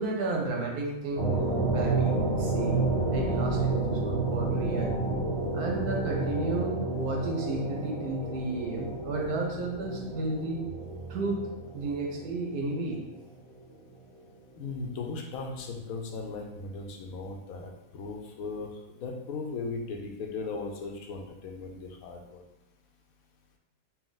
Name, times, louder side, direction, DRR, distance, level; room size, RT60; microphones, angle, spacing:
voice 1, 0.0-1.3 1.7-2.8 3.1-5.0 5.5-10.6 11.1-11.4 11.7-13.0, right 2 dB, 85° right, 0 dB, 1.3 m, -32 dB
sound 1, 1.2-13.0, right 3 dB, 50° right, 1.0 m, -30 dB
voice 2, 14.5-22.5, left 4 dB, 75° left, 2 dB, 1.0 m, -37 dB
4.3 x 2.2 x 3.9 m, 0.93 s
omnidirectional pair, 1.6 m